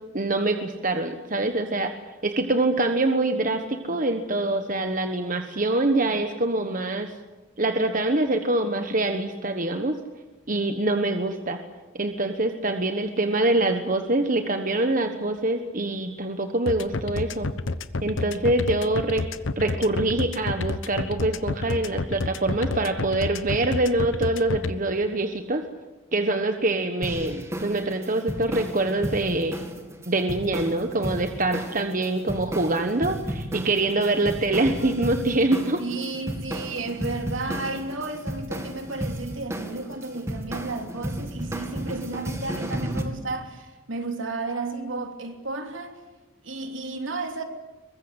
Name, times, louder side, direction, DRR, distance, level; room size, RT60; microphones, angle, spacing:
voice 1, 0.1-1.9 2.2-7.1 7.6-9.9 10.5-11.6 11.9-17.5 18.0-19.2 19.6-25.6 26.1-29.6 30.1-35.8, right 2 dB, 40° right, 1.2 m, -25 dB
sound 1, 16.7-24.7, left 3 dB, 70° left, 1.0 m, -29 dB
sound 2, 27.0-43.0, equal, 15° right, 2.2 m, -33 dB
voice 2, 35.8-46.0 46.4-47.4, right 3 dB, 70° right, 3.0 m, -33 dB
23.5 x 20.5 x 8.2 m
head